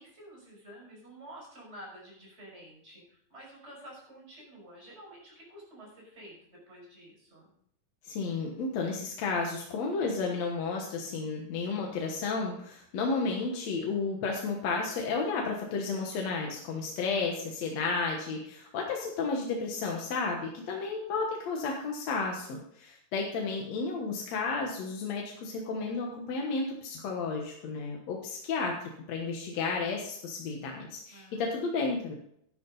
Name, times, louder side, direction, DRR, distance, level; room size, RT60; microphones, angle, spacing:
voice 1, 0.0-7.5 31.1-31.9, equal, 20° right, -4 dB, 6.4 m, -50 dB
voice 2, 8.0-32.1, left 4 dB, 65° left, 0 dB, 2.5 m, -32 dB
12.0 x 11.5 x 4.0 m, 0.70 s
omnidirectional pair, 3.4 m